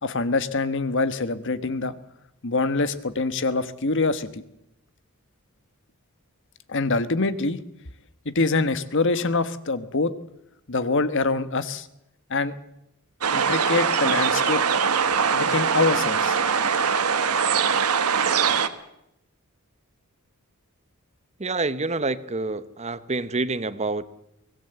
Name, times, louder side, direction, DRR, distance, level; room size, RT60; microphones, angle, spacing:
voice 1, 0.0-1.9 2.4-4.4 6.7-7.6 8.2-10.1 10.7-11.9 12.3-12.5 13.3-14.6 15.3-16.4, left 3 dB, 60° left, 13 dB, 1.3 m, -25 dB
sound 1, 13.2-18.7, right 6 dB, 85° right, 1.4 m, -22 dB
voice 2, 21.4-24.0, right 3 dB, 30° right, 14 dB, 0.9 m, -27 dB
23.5 x 18.0 x 7.9 m, 0.83 s
head